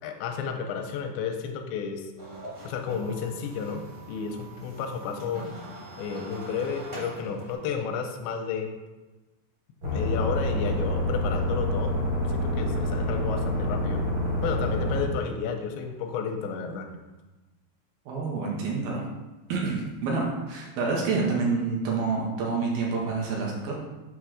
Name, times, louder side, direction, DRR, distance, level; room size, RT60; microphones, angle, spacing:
voice 1, 0.0-2.1 2.6-3.8 4.1-5.5 6.0-8.7 9.8-12.0 12.3-14.1 14.4-16.9, left 6 dB, 80° left, 4 dB, 2.7 m, -32 dB
sound 1, 2.2-7.5, right 1 dB, 40° right, 0.9 m, -43 dB
sound 2, 9.8-15.0, left 1 dB, 60° right, 1.2 m, -27 dB
voice 2, 18.1-19.1 19.5-23.8, right 4 dB, 80° right, -2 dB, 2.1 m, -28 dB
8.1 x 3.1 x 6.3 m, 1.1 s
omnidirectional pair, 5.6 m